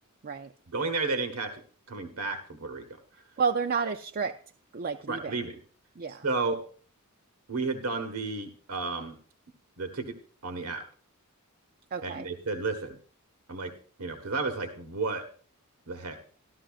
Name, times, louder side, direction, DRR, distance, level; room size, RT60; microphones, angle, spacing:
voice 1, 0.7-1.6 1.9-3.0 5.1-5.6 6.1-6.6 7.5-9.2 9.8-10.2 10.4-10.8 12.0-13.0 13.5-15.2 15.9-16.2, right 3 dB, 80° right, 6 dB, 1.4 m, -32 dB
voice 2, 3.4-4.4 4.7-5.3 6.0-6.2 11.9-12.3, right 5 dB, 40° right, 6 dB, 0.5 m, -30 dB
14.0 x 12.5 x 2.4 m, 0.42 s
head